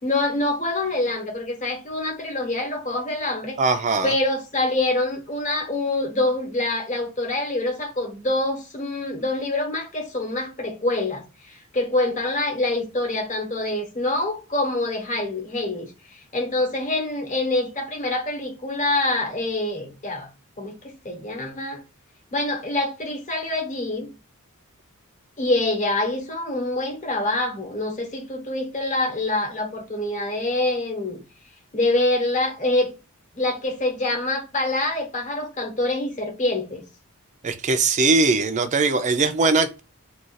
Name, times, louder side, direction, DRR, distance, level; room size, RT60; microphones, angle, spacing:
voice 1, 0.0-3.6 4.0-15.9 16.3-20.3 20.6-21.8 22.3-24.1 25.4-31.2 31.7-32.9 33.3-36.8, left 2 dB, 35° left, 1.0 m, -25 dB
voice 2, 3.6-4.1 37.4-39.8, right 3 dB, 30° right, 0.4 m, -20 dB
2.4 x 2.3 x 4.0 m
head